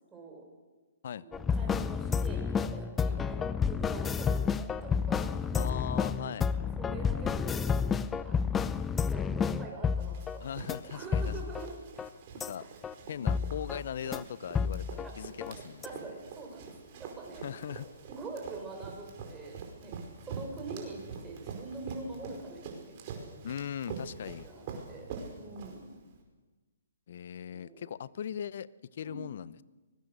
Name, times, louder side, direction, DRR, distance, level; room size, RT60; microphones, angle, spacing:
voice 1, 0.1-0.4 1.2-3.4 3.7-5.6 6.2-6.5 6.8-8.4 9.1-10.5 10.9-11.8 12.6-12.7 13.1-13.4 15.0-17.7 18.1-20.0 20.2-23.4 24.4-25.1 25.4-25.9 27.4-27.9 29.0-29.3, right 3 dB, 15° right, 0 dB, 6.6 m, -45 dB
sound 1, 1.3-10.4 10.7-10.8 11.1-11.7 12.0-12.1 12.4-12.5 12.8-12.9 13.3-13.8 14.1-14.2 14.5-15.1 15.4-15.5 15.8-15.9, left 6 dB, 15° left, 0.7 m, -30 dB
voice 2, 5.5-6.5 10.4-11.3 12.3-12.7 13.1-16.1 17.4-17.9 23.4-24.5 27.1-29.6, left 9 dB, 55° left, 19 dB, 0.7 m, -39 dB
Run, 10.0-26.2, right 5 dB, 40° right, 5.0 m, -45 dB
24.0 x 19.5 x 6.7 m, 1.3 s
hypercardioid pair, 135°, 0 cm